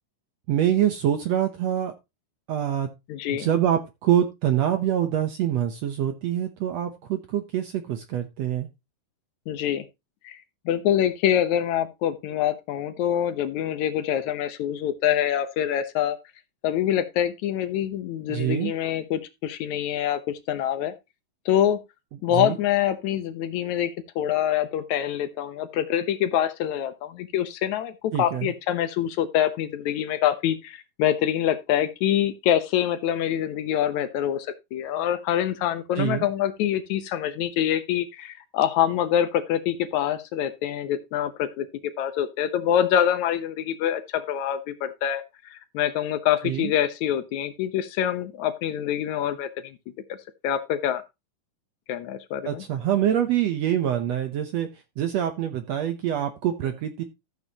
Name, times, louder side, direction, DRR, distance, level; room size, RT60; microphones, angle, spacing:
voice 1, 0.5-1.9 2.5-2.9 3.3-8.7 18.3-18.7 22.3-22.6 28.1-28.5 36.0-36.2 46.4-46.7 52.4-54.7 55.0-57.0, right 10 dB, 70° right, 1.7 m, -25 dB
voice 2, 3.1-3.5 9.5-9.8 10.2-10.4 10.7-16.2 16.6-20.9 21.5-21.8 22.2-27.9 28.2-41.7 42.0-45.2 45.5-49.8 50.4-51.0 51.9-52.6, left 10 dB, 70° left, 2.1 m, -25 dB
13.5 x 7.8 x 2.9 m
omnidirectional pair, 3.9 m